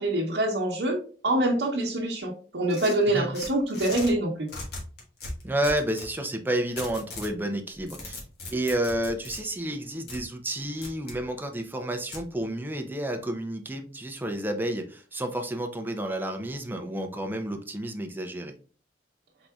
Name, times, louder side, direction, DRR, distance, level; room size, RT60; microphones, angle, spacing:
voice 1, 0.0-4.5, right 1 dB, 85° right, -5 dB, 0.9 m, -25 dB
sound 1, 2.7-4.1 4.5-6.1 6.8-7.3 7.7-9.4 10.1-10.2 10.8-11.2 12.1-12.3, left 2 dB, 65° left, 1.5 m, -39 dB
voice 2, 5.4-8.2 8.5-18.5, right 1 dB, 10° right, 5 dB, 0.6 m, -30 dB
4.6 x 4.0 x 2.3 m, 0.40 s
head